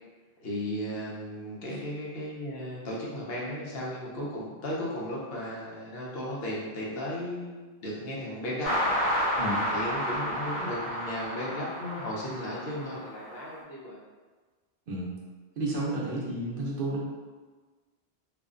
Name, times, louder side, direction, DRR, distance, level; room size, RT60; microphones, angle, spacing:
voice 1, 0.4-8.9 9.7-14.0, equal, 75° left, -5 dB, 0.9 m, -35 dB
sound 1, 8.6-13.4, equal, 50° left, 0.4 m, -31 dB
voice 2, 9.4-9.7 14.9-15.1 15.6-17.0, right 1 dB, 65° right, -4 dB, 0.7 m, -31 dB
2.5 x 2.1 x 2.4 m, 1.4 s
omnidirectional pair, 1.0 m